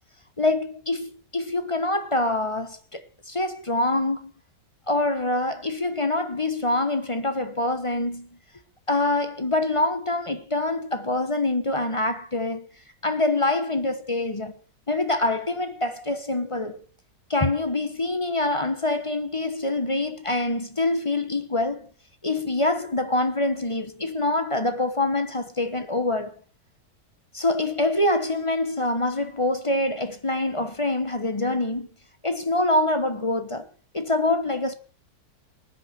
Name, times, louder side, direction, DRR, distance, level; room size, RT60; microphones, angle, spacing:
voice 1, 0.4-4.3 4.9-8.3 8.9-12.7 13.0-14.6 14.9-16.9 17.3-21.9 22.2-26.3 27.3-31.9 32.2-33.7 33.9-34.7, left 2 dB, 20° left, 0.9 m, -25 dB
19.0 x 9.9 x 5.8 m
omnidirectional pair, 1.9 m